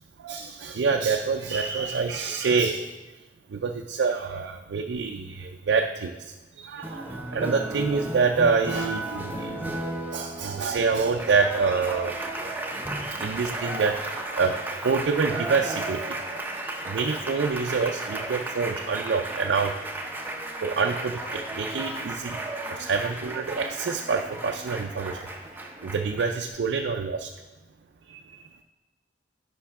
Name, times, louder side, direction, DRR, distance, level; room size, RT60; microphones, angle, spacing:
voice 1, 0.2-2.9 3.5-12.1 13.1-16.4 16.9-19.8 20.6-25.3 25.8-27.3 28.1-28.5, right 5 dB, 85° right, 3 dB, 0.4 m, -27 dB
Applause, 6.8-26.5, right 1 dB, 10° right, 0.7 m, -34 dB
10.0 x 5.4 x 3.5 m, 1.1 s
head